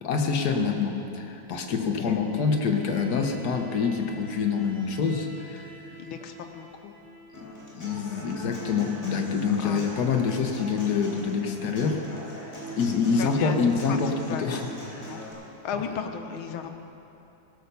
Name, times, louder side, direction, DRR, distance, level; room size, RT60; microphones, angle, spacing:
voice 1, 0.0-5.7 7.3-7.4 7.7-12.0 12.8-15.1, left 5 dB, 55° left, 4 dB, 1.4 m, -26 dB
voice 2, 1.8-2.2 6.0-6.9 9.6-9.8 13.1-14.6 14.9-15.2 15.6-16.7, left 6 dB, 90° left, 6 dB, 1.7 m, -36 dB
Bowed string instrument, 2.1-7.7, equal, 75° right, 2.1 m, -47 dB
Human voice / Acoustic guitar, 7.3-15.3, equal, 25° left, 3.3 m, -41 dB
17.0 x 6.7 x 6.7 m, 2.8 s
omnidirectional pair, 2.2 m